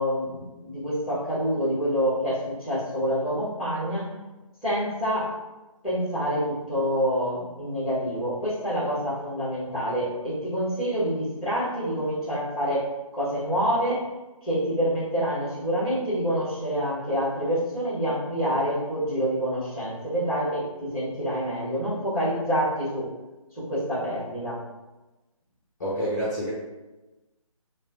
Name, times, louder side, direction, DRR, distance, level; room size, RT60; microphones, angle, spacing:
voice 1, 0.0-4.1 4.6-5.3 5.8-12.8 13.1-14.0 14.4-23.1 23.6-24.6, equal, ahead, -12 dB, 1.2 m, -27 dB
voice 2, 25.8-26.5, equal, 30° left, -7 dB, 0.6 m, -27 dB
4.3 x 2.1 x 2.4 m, 1.1 s
figure-of-eight pair, 155°, 18 cm